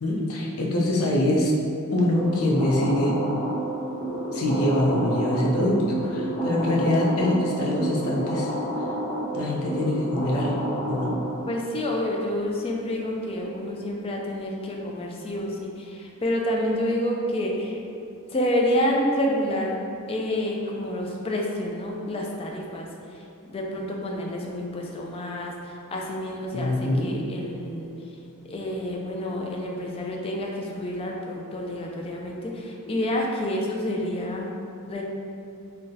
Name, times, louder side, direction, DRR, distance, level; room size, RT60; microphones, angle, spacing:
voice 1, 0.0-1.5 1.9-3.2 4.3-8.5 9.3-10.5 10.9-11.2 26.5-27.1, left 1 dB, 75° left, -2 dB, 0.5 m, -24 dB
sound 1, 2.1-11.6, right 1 dB, 20° right, 1.4 m, -29 dB
voice 2, 11.5-17.8 18.3-19.7 20.1-27.9 28.4-34.5 34.9-35.0, left 1 dB, 25° left, -1 dB, 0.3 m, -28 dB
3.8 x 2.2 x 2.6 m, 2.6 s
head